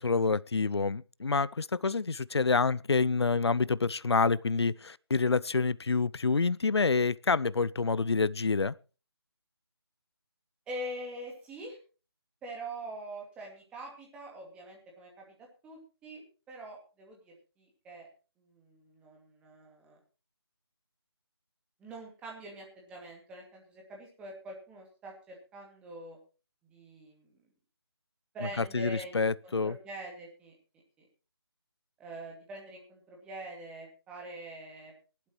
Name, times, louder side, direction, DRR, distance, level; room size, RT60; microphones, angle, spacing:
voice 1, 0.0-8.7 28.7-29.8, left 4 dB, 75° left, 0.5 m, -27 dB
voice 2, 10.7-11.8 12.4-15.3 15.6-16.2 16.5-18.1 18.4-20.0 21.8-26.2 26.7-27.3 28.3-30.6 31.0-31.1 32.0-34.9, right 1 dB, 5° right, 2.5 m, -44 dB
19.0 x 11.5 x 3.1 m
figure-of-eight pair, 155°, 14 cm